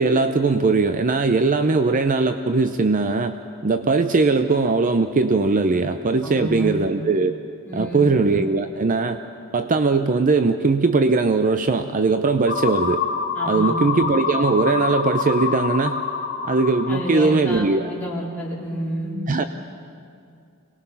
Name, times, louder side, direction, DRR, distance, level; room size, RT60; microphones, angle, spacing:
voice 1, 0.0-3.4 3.6-7.4 7.7-9.2 9.5-13.0 13.5-16.0 16.4-17.9 19.3-19.4, right 3 dB, 35° right, 9 dB, 0.6 m, -20 dB
voice 2, 6.2-6.7 7.7-8.0 13.4-13.7 16.9-19.1, equal, 10° left, -6 dB, 4.0 m, -30 dB
sound 1, 12.5-17.5, left 5 dB, 45° left, 1.2 m, -26 dB
25.0 x 19.5 x 5.7 m, 2.4 s
head